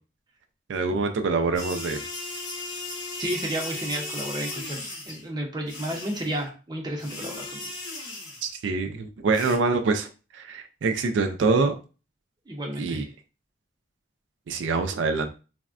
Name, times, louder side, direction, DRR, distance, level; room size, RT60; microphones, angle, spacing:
voice 1, 0.7-2.0 8.4-10.1 10.3-11.7 12.8-13.1 14.5-15.3, right 4 dB, 85° right, 6 dB, 0.4 m, -25 dB
sound 1, 1.5-5.2 5.7-6.4 7.0-8.6 9.3-9.6, left 2 dB, 80° left, 1.2 m, -36 dB
voice 2, 3.2-7.6 12.5-13.0, right 1 dB, 25° right, -1 dB, 0.6 m, -32 dB
3.3 x 2.1 x 2.4 m, 0.33 s
head